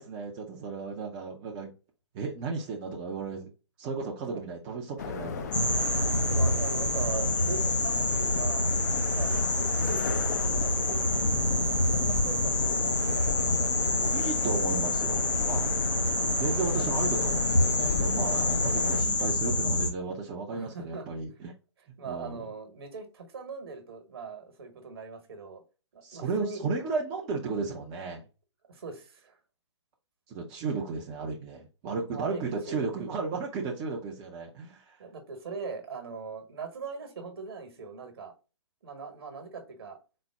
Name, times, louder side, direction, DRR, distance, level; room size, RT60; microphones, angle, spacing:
voice 1, 0.0-1.7 2.1-3.5 3.8-5.7 12.1-12.4 14.1-15.7 16.4-21.5 22.0-22.4 26.0-28.3 30.3-35.0, right 4 dB, 20° right, 0.5 m, -34 dB
sound 1, 5.0-19.0, left 6 dB, 35° left, 0.4 m, -35 dB
sound 2, 5.5-19.9, left 1 dB, 85° left, 0.9 m, -27 dB
voice 2, 6.3-8.7 9.1-14.2 16.5-16.7 20.5-21.1 21.8-25.6 25.9-26.6 28.7-29.4 32.1-32.9 35.0-38.3 38.8-40.0, right 5 dB, 55° right, 1.2 m, -41 dB
4.1 x 2.0 x 3.4 m
figure-of-eight pair, 135°, 15 cm